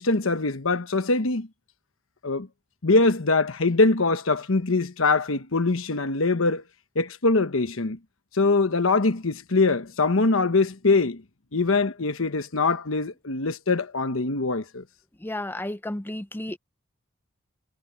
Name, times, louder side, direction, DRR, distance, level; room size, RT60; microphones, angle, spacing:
voice 1, 0.0-1.5 2.2-2.5 2.8-6.6 6.9-8.0 8.3-11.2 11.5-14.8, left 3 dB, 85° left, 1.2 m, -23 dB
voice 2, 15.2-16.6, left 1 dB, 10° left, 0.6 m, -32 dB
head